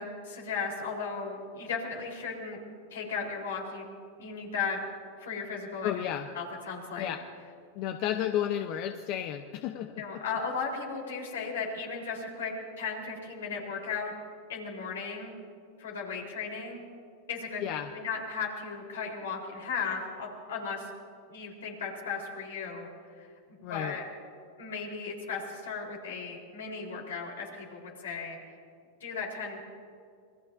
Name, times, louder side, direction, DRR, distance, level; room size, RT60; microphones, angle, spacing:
voice 1, 0.0-2.6 2.9-3.8 4.2-4.8 5.2-6.0 6.3-7.1 10.0-14.1 14.5-15.3 15.8-16.8 17.3-20.9 21.3-22.9 23.2-23.3 23.7-24.1 24.6-28.4 29.0-29.6, left 5 dB, 85° left, -1 dB, 4.0 m, -36 dB
voice 2, 5.8-6.3 7.0-7.2 7.8-10.2 17.6-17.9 23.6-23.9, left 11 dB, 50° left, 6 dB, 0.8 m, -32 dB
26.5 x 20.5 x 2.7 m, 2.3 s
hypercardioid pair, 110°, 0 cm